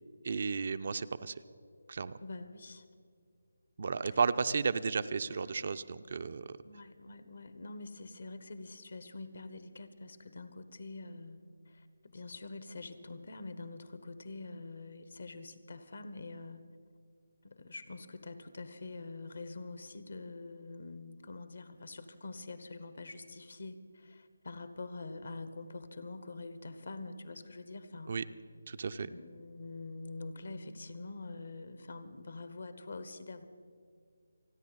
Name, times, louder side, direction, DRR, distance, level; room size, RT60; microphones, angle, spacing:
voice 1, 0.2-1.3 1.9-2.1 3.8-6.6 28.1-28.3 28.7-29.1, right 5 dB, 50° right, 12 dB, 0.5 m, -33 dB
voice 2, 2.2-2.8 6.6-11.4 12.1-16.6 17.4-23.8 24.4-28.2 29.0-33.4, left 3 dB, 60° left, 11 dB, 1.1 m, -45 dB
29.0 x 10.0 x 4.1 m, 2.2 s
figure-of-eight pair, 155°, 0 cm